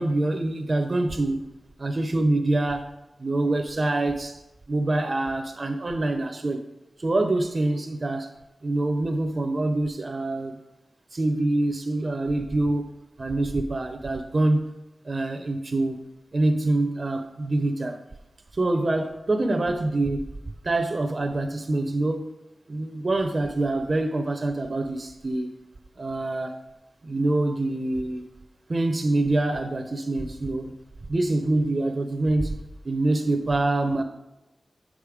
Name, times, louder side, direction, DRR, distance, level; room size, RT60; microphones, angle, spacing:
voice 1, 0.0-1.4 1.8-2.9 3.2-4.4 4.7-6.6 7.0-8.3 8.6-10.6 11.1-12.9 13.2-14.7 15.0-16.0 16.3-18.1 18.5-20.3 20.6-22.3 22.7-25.5 26.0-26.6 27.0-28.2 28.7-30.7 31.1-32.6 32.8-34.0, right 2 dB, 50° right, 6 dB, 0.5 m, -25 dB
6.3 x 4.9 x 4.9 m, 0.95 s
wide cardioid pair, 65°, 0 cm